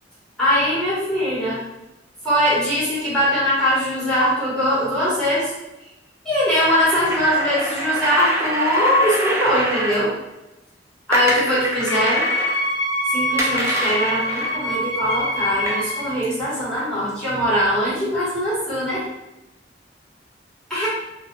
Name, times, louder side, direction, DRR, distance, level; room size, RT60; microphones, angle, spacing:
voice 1, 0.4-1.6 2.2-5.5 6.2-10.1 11.1-12.3 13.1-19.0 20.7-20.9, equal, 5° left, -10 dB, 1.1 m, -21 dB
sound 1, 6.6-10.0 11.1-12.6 13.4-14.6 15.7-15.8 16.8-16.9, equal, 15° right, 0.3 m, -26 dB
Wind instrument woodwind instrument, 11.9-16.2, equal, 85° left, 0.7 m, -24 dB
2.3 x 2.1 x 2.9 m, 0.94 s
head